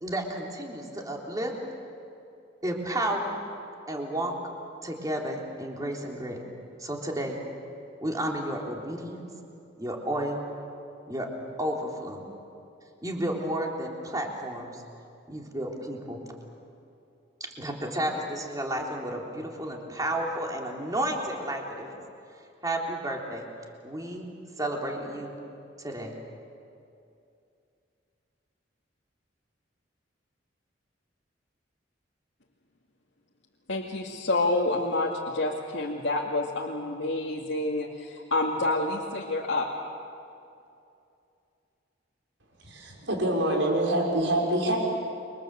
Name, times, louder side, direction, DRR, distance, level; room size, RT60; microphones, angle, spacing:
voice 1, 0.0-1.5 2.6-3.4 3.9-4.3 4.8-6.4 6.8-7.4 8.0-9.2 9.8-10.5 11.1-11.3 11.6-12.2 13.0-14.8 15.3-16.2 17.4-22.0 22.6-23.5 23.8-24.3 24.6-25.3 25.8-26.1, right 1 dB, 20° right, 0 dB, 3.4 m, -32 dB
voice 2, 33.7-39.7, left 2 dB, 80° left, -3 dB, 2.3 m, -28 dB
voice 3, 42.6-44.8, right 1 dB, 85° right, -1 dB, 6.1 m, -26 dB
29.5 x 24.0 x 7.7 m, 2.6 s
head